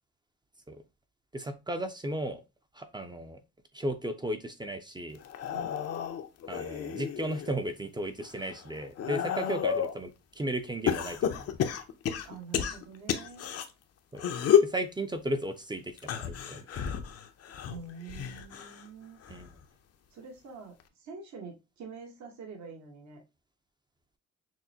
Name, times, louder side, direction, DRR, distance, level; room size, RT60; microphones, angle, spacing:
voice 1, 1.3-2.4 2.7-3.4 3.7-5.2 6.5-11.6 14.1-14.2 14.6-16.7 19.3-19.6, right 1 dB, 15° right, 8 dB, 0.5 m, -35 dB
sound 1, 5.2-7.5 8.0-10.0 10.9-13.7 14.2-14.8 16.0-18.9 19.2-19.6 20.8-20.9, left 8 dB, 55° left, 0.6 m, -31 dB
voice 2, 12.2-13.5 17.7-19.2 20.1-23.2, right 5 dB, 65° right, 2 dB, 1.3 m, -46 dB
6.1 x 2.1 x 2.7 m, 0.25 s
cardioid pair, 90°, 30 cm